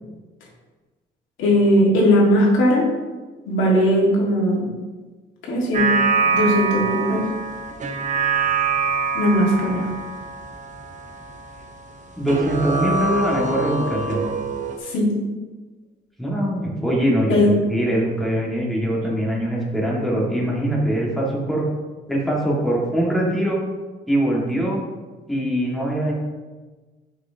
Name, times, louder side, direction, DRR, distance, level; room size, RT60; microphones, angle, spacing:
voice 1, 1.4-2.9 3.5-4.7 5.4-5.9 6.2-7.3 9.1-9.8 14.8-15.1 17.3-17.5, equal, 90° left, -3 dB, 1.7 m, -18 dB
sound 1, 5.7-12.0 12.3-14.8, right 5 dB, 40° right, 0.7 m, -24 dB
voice 2, 12.2-14.3 16.2-21.6 22.1-23.6 24.1-24.8 25.3-26.1, right 1 dB, ahead, -4 dB, 1.7 m, -22 dB
5.9 x 5.8 x 2.8 m, 1.3 s
cardioid pair, 90°, 20 cm